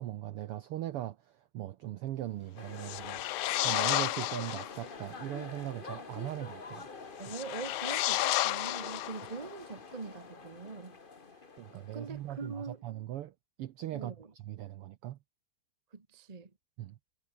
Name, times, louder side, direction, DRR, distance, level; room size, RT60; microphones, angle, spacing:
voice 1, 0.0-3.2 3.6-6.9 11.6-15.2 16.8-17.0, right 13 dB, 75° right, 1.3 m, -39 dB
sound 1, 2.6-12.4, left 4 dB, 30° left, 0.9 m, -47 dB
sound 2, 2.8-4.8 7.2-9.5, left 17 dB, 80° left, 1.5 m, -32 dB
voice 2, 7.2-11.0 11.9-12.8 13.9-14.3 15.9-16.5, right 4 dB, 30° right, 0.7 m, -43 dB
omnidirectional pair, 3.4 m